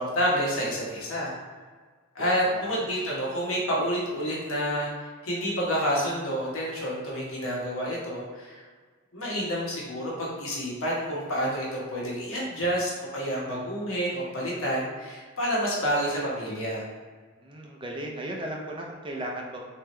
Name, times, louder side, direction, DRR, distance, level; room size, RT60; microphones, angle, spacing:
voice 1, 0.0-1.3 2.1-8.6 9.1-16.8, equal, 75° left, -4 dB, 1.2 m, -29 dB
voice 2, 2.2-2.9 17.4-19.7, right 1 dB, 25° right, -1 dB, 0.4 m, -36 dB
3.5 x 3.0 x 3.2 m, 1.5 s
head